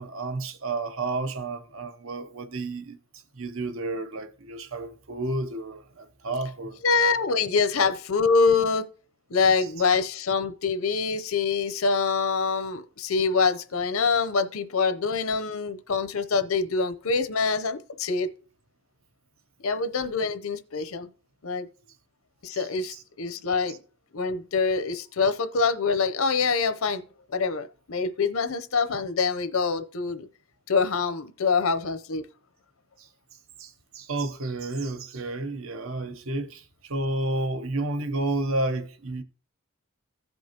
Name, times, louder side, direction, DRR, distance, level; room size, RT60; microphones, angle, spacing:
voice 1, 0.0-3.0 3.3-6.8 22.6-23.0 33.0-33.1 33.6-39.2, right 2 dB, 65° right, 0.9 m, -31 dB
voice 2, 6.8-8.9 9.3-18.3 19.6-21.1 21.4-21.6 22.4-23.8 24.1-27.0 27.3-30.3 30.7-32.2, left 4 dB, 75° left, 0.8 m, -25 dB
16.0 x 5.3 x 2.9 m
head